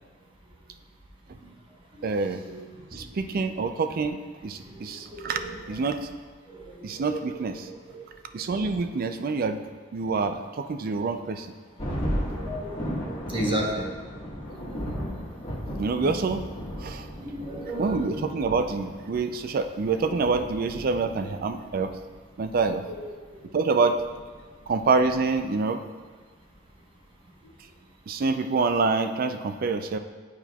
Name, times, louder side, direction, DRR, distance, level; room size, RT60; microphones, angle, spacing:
voice 1, 2.0-2.4 2.9-5.4 5.7-6.1 6.8-7.7 8.3-9.6 9.9-11.5 15.8-16.5 16.8-17.1 17.8-21.9 22.4-22.8 23.5-24.0 24.7-25.8 28.1-30.0, right 4 dB, 50° right, 8 dB, 0.4 m, -26 dB
voice 2, 4.6-5.6 6.5-8.1 8.4-8.5 10.0-10.1 12.3-14.0 14.7-14.8 17.1-18.2 20.1-20.3 22.8-23.1 27.4-27.5, right 1 dB, 25° right, -2 dB, 1.0 m, -35 dB
Thunder, 11.8-25.7, equal, 30° left, 1.4 m, -36 dB
11.0 x 4.3 x 2.3 m, 1.5 s
head